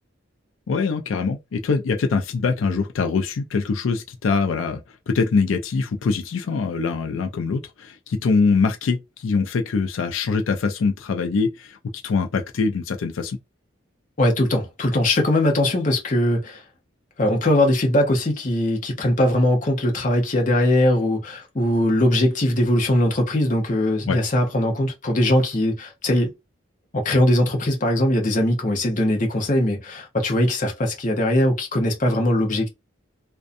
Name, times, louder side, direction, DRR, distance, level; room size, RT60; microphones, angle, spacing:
voice 1, 0.7-11.8 12.0-13.4 24.1-24.2, left 4 dB, 85° left, 0.4 m, -23 dB
voice 2, 14.2-16.6 17.2-26.3 26.9-32.7, left 1 dB, 40° left, 0.7 m, -20 dB
2.5 x 2.2 x 2.5 m
head